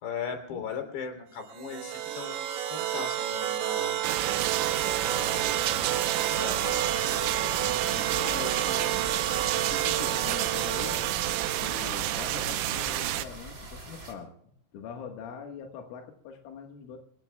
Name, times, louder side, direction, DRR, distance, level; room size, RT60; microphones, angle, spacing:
voice 1, 0.0-4.0 5.0-8.9, left 5 dB, 60° left, 5 dB, 5.4 m, -39 dB
sound 1, 1.5-12.7, right 11 dB, 70° right, 3.0 m, -31 dB
sound 2, 4.0-13.3, right 14 dB, 90° right, 3.4 m, -30 dB
sound 3, 6.6-14.1, right 2 dB, 25° right, 3.1 m, -44 dB
voice 2, 7.8-8.4 9.6-11.0 11.6-14.3 14.7-17.0, left 6 dB, 90° left, 3 dB, 4.1 m, -43 dB
28.0 x 18.5 x 2.3 m, 0.66 s
omnidirectional pair, 5.5 m